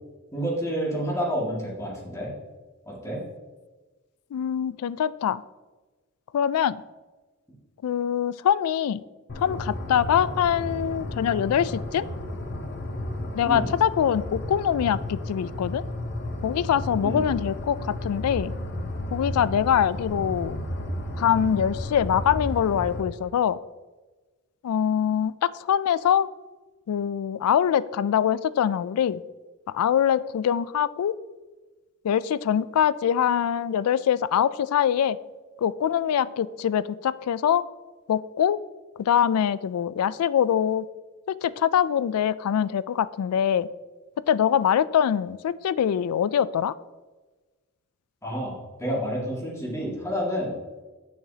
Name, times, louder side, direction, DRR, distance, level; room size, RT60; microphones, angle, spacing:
voice 1, 0.3-2.3 2.9-3.2 13.4-13.7 17.0-17.2 48.2-50.5, equal, 15° left, -4 dB, 2.0 m, -29 dB
voice 2, 4.3-5.4 6.3-6.8 7.8-9.0 9.4-12.1 13.3-15.8 16.4-18.5 19.1-20.6 21.2-23.6 24.6-26.3 26.9-29.2 29.7-31.1 32.0-35.2 35.6-37.6 38.1-38.6 39.0-40.9 41.3-43.7 44.3-46.7, left 9 dB, 80° left, 18 dB, 0.3 m, -23 dB
sound 1, 9.3-23.0, left 1 dB, 50° left, 0.8 m, -33 dB
9.1 x 6.5 x 2.8 m, 1.2 s
head